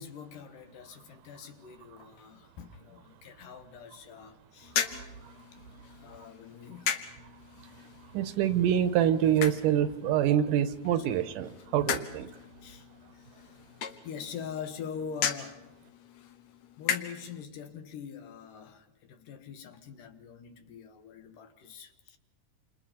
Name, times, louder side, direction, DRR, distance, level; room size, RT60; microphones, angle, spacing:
voice 1, 0.0-4.8 5.9-6.9 12.6-12.9 13.1-15.7 16.8-22.2, left 7 dB, 90° left, 2.9 m, -44 dB
sound 1, 4.6-17.4, left 8 dB, 65° left, 2.1 m, -38 dB
voice 2, 8.1-12.3, right 10 dB, 85° right, 2.6 m, -26 dB
28.0 x 28.0 x 4.4 m
omnidirectional pair, 3.7 m